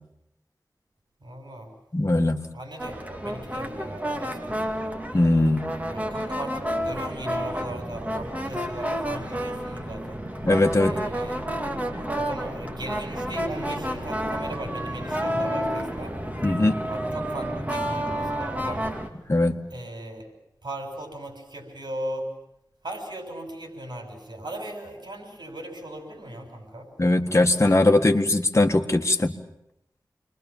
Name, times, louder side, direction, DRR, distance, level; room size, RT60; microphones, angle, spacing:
voice 1, 1.2-1.7 2.5-4.8 5.9-10.2 10.8-11.5 12.1-16.2 16.9-18.8 19.7-20.3 20.6-22.3 22.8-26.9, right 1 dB, 80° right, 3 dB, 6.3 m, -37 dB
voice 2, 1.9-2.4 5.1-5.7 10.5-11.0 16.4-16.8 19.3-19.6 27.0-29.3, left 2 dB, 40° left, 4 dB, 1.9 m, -20 dB
sound 1, 2.8-19.1, equal, 20° right, 2.6 m, -30 dB
28.5 x 21.5 x 7.4 m, 0.81 s
wide cardioid pair, 65°, 7 cm